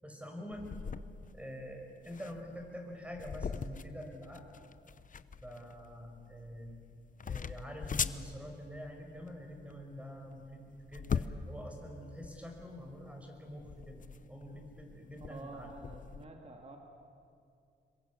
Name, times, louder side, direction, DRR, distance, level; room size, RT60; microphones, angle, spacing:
voice 1, 0.0-0.7 1.3-4.4 5.4-6.7 7.2-15.7, equal, 5° right, 2 dB, 5.4 m, -46 dB
sound 1, 0.5-16.2, left 6 dB, 45° left, 0.8 m, -42 dB
voice 2, 15.3-16.8, right 2 dB, 30° right, 2 dB, 2.4 m, -49 dB
26.5 x 22.0 x 8.4 m, 2.5 s
cardioid pair, 100°, 19 cm